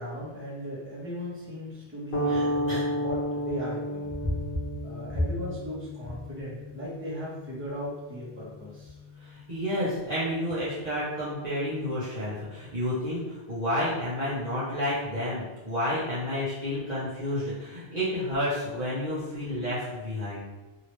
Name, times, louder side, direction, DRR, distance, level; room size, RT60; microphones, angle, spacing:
voice 1, 0.0-4.1 4.8-8.9, equal, 10° right, -8 dB, 1.1 m, -37 dB
sound 1, 2.1-10.5, equal, 85° left, 1.0 m, -34 dB
voice 2, 2.3-2.9 4.2-4.3 9.2-20.4, left 1 dB, 45° right, -11 dB, 0.9 m, -30 dB
3.0 x 2.8 x 3.0 m, 1.1 s
omnidirectional pair, 1.1 m